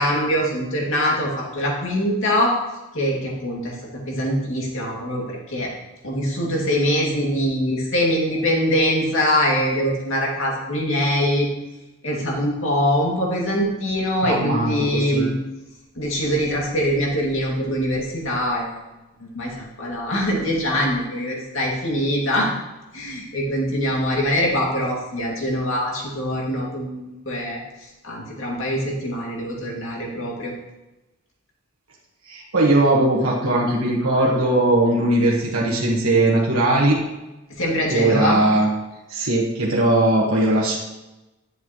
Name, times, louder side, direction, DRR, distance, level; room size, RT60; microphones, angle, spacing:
voice 1, 0.0-2.5 2.9-3.8 4.1-5.7 6.0-11.5 12.0-15.3 16.0-18.7 19.3-22.5 22.9-30.5 37.5-38.4, equal, 65° left, -3 dB, 2.4 m, -23 dB
voice 2, 14.2-15.2 32.3-37.0 37.9-38.7 39.1-40.8, right 1 dB, 80° right, -4 dB, 1.4 m, -19 dB
10.5 x 7.9 x 3.1 m, 1.0 s
head